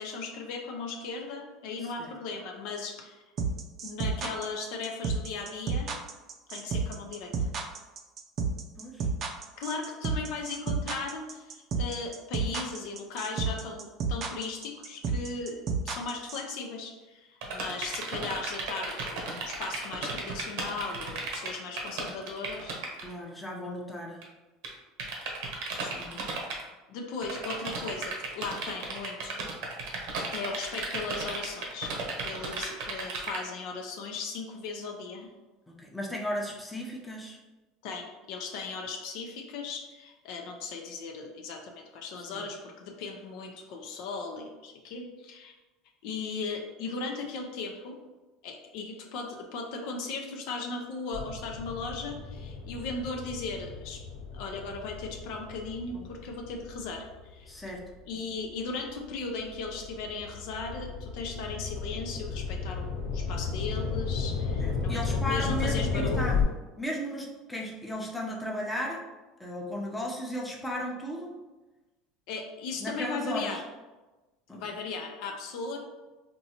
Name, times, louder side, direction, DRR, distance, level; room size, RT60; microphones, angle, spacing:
voice 1, 0.0-3.2 3.8-5.9 6.5-7.5 9.6-22.8 25.8-26.1 26.9-29.4 30.3-31.9 32.2-35.3 37.8-45.5 46.0-48.0 48.4-54.0 54.3-57.5 58.1-66.4 72.3-73.6 74.5-75.8, left 4 dB, 70° left, 2 dB, 0.6 m, -37 dB
voice 2, 1.8-2.1 8.8-9.1 23.0-24.3 25.9-26.2 35.7-37.4 42.3-42.4 55.9-56.0 57.5-57.8 64.6-66.4 66.8-69.0 69.4-71.4 72.8-73.6 74.5-74.6, equal, 5° left, -2 dB, 0.7 m, -35 dB
sound 1, 3.4-16.5, right 5 dB, 45° right, 0.5 m, -30 dB
sound 2, 17.4-23.1 24.2-24.3 24.6-24.7 25.0-26.6 27.2-33.4, right 4 dB, 75° right, 0.9 m, -34 dB
sound 3, 51.1-57.9 58.5-66.4, left 5 dB, 85° left, 1.0 m, -34 dB
4.4 x 2.6 x 2.9 m, 1.2 s
supercardioid pair, 115°, 0 cm